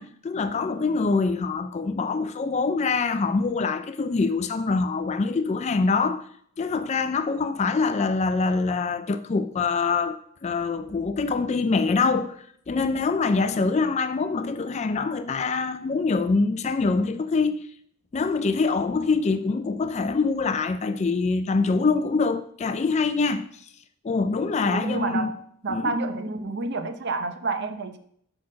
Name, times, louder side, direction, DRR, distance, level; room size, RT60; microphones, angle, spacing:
voice 1, 0.0-6.2 6.6-10.2 10.4-12.3 12.7-17.6 18.1-23.6 24.0-25.3 25.7-25.9, left 4 dB, 30° left, 0.3 m, -24 dB
voice 2, 24.7-25.3 25.6-28.0, right 3 dB, 50° right, 0.7 m, -29 dB
6.4 x 5.8 x 6.2 m
head